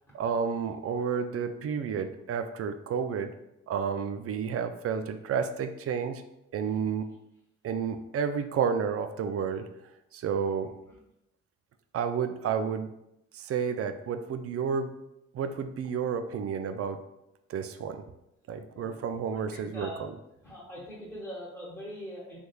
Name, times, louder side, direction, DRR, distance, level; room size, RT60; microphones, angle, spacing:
voice 1, 0.1-3.3 3.7-6.2 6.5-7.1 7.6-9.7 10.1-10.7 11.9-12.9 13.3-15.0 15.3-17.0 17.5-18.0 18.5-20.1, right 6 dB, 40° right, 9 dB, 0.4 m, -31 dB
voice 2, 18.7-19.0 19.3-20.1 20.4-22.4, equal, ahead, -6 dB, 1.2 m, -42 dB
3.4 x 3.1 x 2.2 m, 0.86 s
hypercardioid pair, 50°, 36 cm